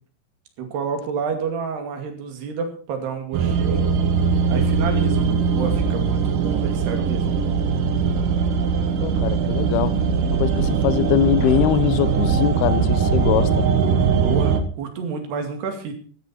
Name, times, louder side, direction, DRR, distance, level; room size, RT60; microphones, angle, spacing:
voice 1, 0.6-3.9 4.5-7.3 14.2-15.9, right 6 dB, 85° right, 4.5 m, -29 dB
sound 1, 3.3-14.6, right 6 dB, 65° right, 2.6 m, -21 dB
voice 2, 9.0-10.0 10.3-13.7, left 12 dB, 80° left, 2.7 m, -22 dB
14.5 x 12.5 x 4.4 m
omnidirectional pair, 4.6 m